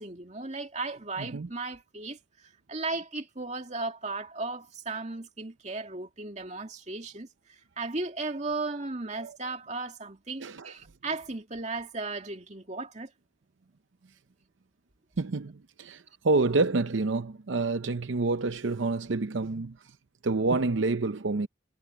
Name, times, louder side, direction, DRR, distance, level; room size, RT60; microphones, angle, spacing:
voice 1, 0.0-13.1, right 3 dB, 35° right, 2.4 m, -36 dB
voice 2, 10.4-10.7 15.2-19.8 20.2-21.5, right 3 dB, 75° right, 0.7 m, -28 dB
head